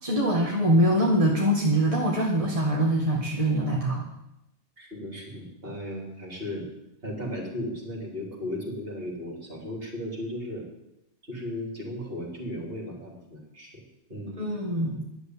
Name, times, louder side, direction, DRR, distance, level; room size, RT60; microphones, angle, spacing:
voice 1, 0.0-4.1 14.4-15.1, equal, 25° right, -3 dB, 1.8 m, -23 dB
voice 2, 4.8-6.6 7.0-10.7 11.2-13.8 14.1-14.5, left 1 dB, 45° right, -1 dB, 3.7 m, -36 dB
10.5 x 8.2 x 9.6 m, 0.88 s
omnidirectional pair, 1.4 m